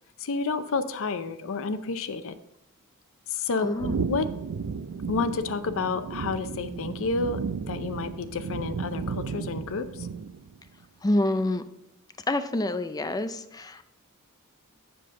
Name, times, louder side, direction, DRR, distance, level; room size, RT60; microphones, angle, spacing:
voice 1, 0.2-2.4 3.3-4.3 5.1-7.4 7.7-10.1, left 4 dB, 65° left, 11 dB, 0.6 m, -30 dB
voice 2, 3.6-4.1 11.0-11.6 12.3-13.8, left 1 dB, 15° left, 11 dB, 0.4 m, -27 dB
sound 1, 3.8-10.6, right 5 dB, 85° right, 0.5 m, -34 dB
7.8 x 6.8 x 3.7 m, 0.84 s
head